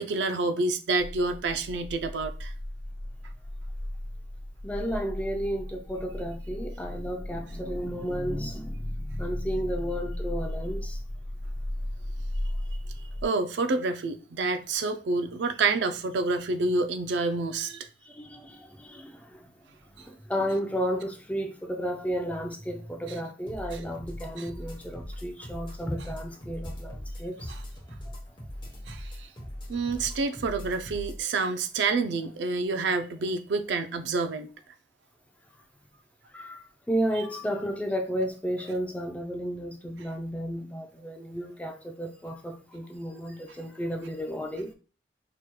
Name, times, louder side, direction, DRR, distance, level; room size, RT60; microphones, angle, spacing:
voice 1, 0.0-2.5 13.2-17.9 24.4-24.5 28.9-29.3 29.7-34.5, right 3 dB, 70° right, 0.4 m, -28 dB
sound 1, 1.0-13.3, left 1 dB, 60° left, 1.2 m, -36 dB
voice 2, 4.6-11.0 18.0-19.5 19.9-27.5 28.0-28.1 36.3-44.7, equal, 10° left, 0.4 m, -33 dB
sound 2, 23.5-31.2, equal, 25° left, 0.8 m, -40 dB
4.7 x 3.0 x 2.2 m
head